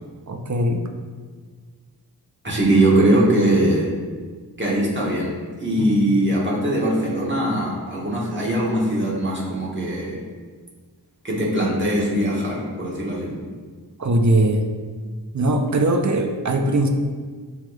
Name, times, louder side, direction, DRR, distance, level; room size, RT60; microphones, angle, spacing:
voice 1, 0.3-0.8 5.8-6.2 14.0-14.6 15.3-16.9, right 1 dB, 50° right, 4 dB, 0.5 m, -20 dB
voice 2, 2.4-3.9 4.6-10.2 11.2-13.4, right 1 dB, 30° right, -5 dB, 1.3 m, -21 dB
7.5 x 3.1 x 2.3 m, 1.6 s
wide cardioid pair, 55°, 38 cm